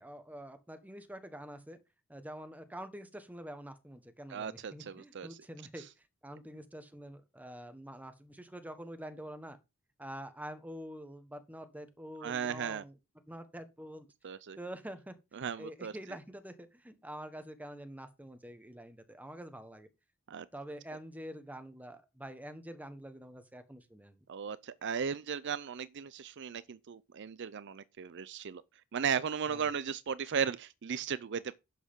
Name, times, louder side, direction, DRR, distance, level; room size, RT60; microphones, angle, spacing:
voice 1, 0.0-1.8 2.1-9.6 10.0-12.9 13.3-14.1 14.6-19.9 20.5-24.2 29.5-29.7, equal, 5° right, 1.3 m, -46 dB
voice 2, 4.3-5.4 12.2-12.8 14.2-14.6 15.3-15.9 20.3-20.5 24.3-28.6 28.9-31.5, right 7 dB, 55° right, 0.5 m, -36 dB
11.0 x 8.0 x 3.7 m
head